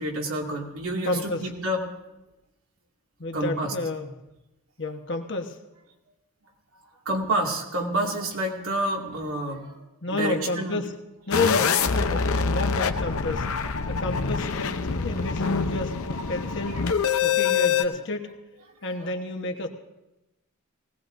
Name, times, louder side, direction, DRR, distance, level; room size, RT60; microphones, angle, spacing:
voice 1, 0.0-1.8 3.3-3.7 7.1-9.8 10.1-10.8 13.8-13.9 16.7-16.8 19.0-19.1, right 1 dB, 85° right, 0 dB, 2.3 m, -28 dB
voice 2, 1.0-1.5 3.2-4.1 4.8-5.6 10.0-10.9 11.3-13.5 13.9-16.8 17.2-18.3 18.8-19.7, left 2 dB, 55° left, 4 dB, 1.2 m, -30 dB
sound 1, 11.3-17.8, left 6 dB, 85° left, 0.7 m, -25 dB
19.5 x 17.0 x 2.6 m, 0.98 s
head